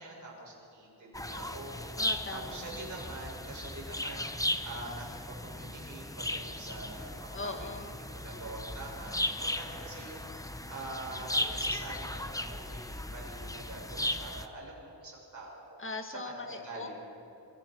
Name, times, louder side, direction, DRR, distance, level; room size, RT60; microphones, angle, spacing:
voice 1, 0.0-2.0 2.3-7.7 8.1-15.8 16.1-17.0, right 2 dB, 40° right, -4 dB, 6.7 m, -45 dB
sound 1, 1.1-14.5, left 1 dB, 10° left, 0.7 m, -36 dB
voice 2, 2.0-2.6 7.3-8.0 15.8-17.0, left 3 dB, 25° left, 5 dB, 1.8 m, -40 dB
26.0 x 24.5 x 4.6 m, 3.0 s
wide cardioid pair, 160°, 46 cm